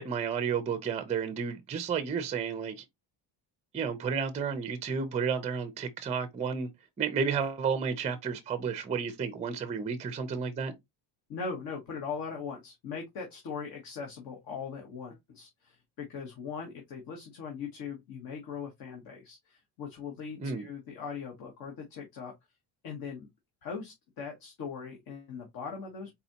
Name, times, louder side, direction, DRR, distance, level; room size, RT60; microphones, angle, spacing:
voice 1, 0.0-2.8 3.7-6.7 7.0-10.7 20.4-20.7, right 6 dB, 15° right, 0.5 m, -32 dB
voice 2, 11.3-22.3 22.8-23.3 23.6-26.1, left 5 dB, 55° left, 1.5 m, -40 dB
4.3 x 4.0 x 2.8 m
cardioid pair, 165°, 42 cm